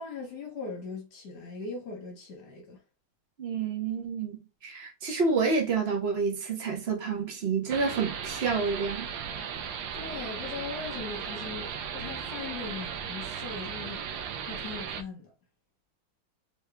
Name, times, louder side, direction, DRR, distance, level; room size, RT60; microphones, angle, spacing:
voice 1, 0.0-2.8 9.9-14.0 14.4-15.3, left 4 dB, 60° left, 1.3 m, -40 dB
voice 2, 3.4-9.1, right 4 dB, 50° right, 0.7 m, -29 dB
sound 1, 7.7-15.0, right 7 dB, 75° right, 1.1 m, -36 dB
3.5 x 3.2 x 3.3 m
omnidirectional pair, 2.4 m